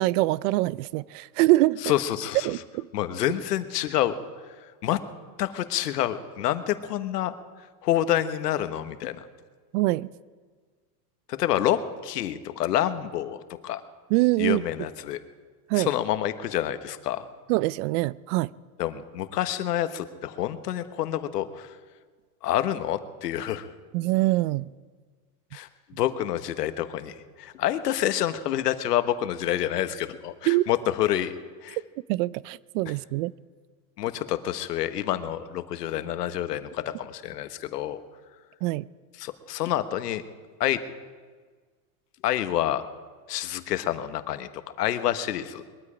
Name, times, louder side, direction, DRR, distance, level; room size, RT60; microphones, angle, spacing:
voice 1, 0.0-1.8 2.4-2.9 9.7-10.1 14.1-14.6 15.7-15.9 17.5-18.5 23.9-24.7 30.5-30.6 32.1-33.3 38.6-38.9, right 19 dB, 55° right, 22 dB, 0.5 m, -24 dB
voice 2, 1.8-2.5 2.9-4.2 4.8-5.0 5.4-7.3 7.8-9.2 11.3-13.8 14.4-15.2 15.7-17.3 18.8-21.7 22.4-23.7 25.5-25.7 26.0-31.3 31.6-31.8 34.0-38.0 39.2-40.2 40.6-40.8 42.2-42.8 43.3-45.6, left 12 dB, 90° left, 11 dB, 1.3 m, -28 dB
21.5 x 13.0 x 5.0 m, 1.5 s
supercardioid pair, 120°, 47 cm